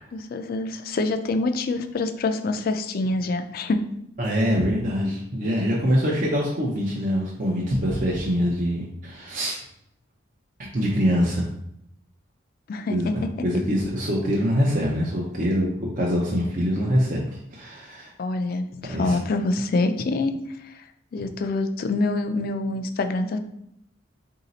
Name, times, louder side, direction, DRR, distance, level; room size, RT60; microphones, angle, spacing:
voice 1, 0.1-3.8 12.7-13.0 13.2-13.3 18.2-20.8 21.1-23.4, left 2 dB, 50° left, 8 dB, 0.3 m, -26 dB
voice 2, 4.2-9.6 10.7-11.4 12.9-18.1 18.9-19.2, equal, 40° right, -3 dB, 0.6 m, -24 dB
3.9 x 2.8 x 3.9 m, 0.77 s
head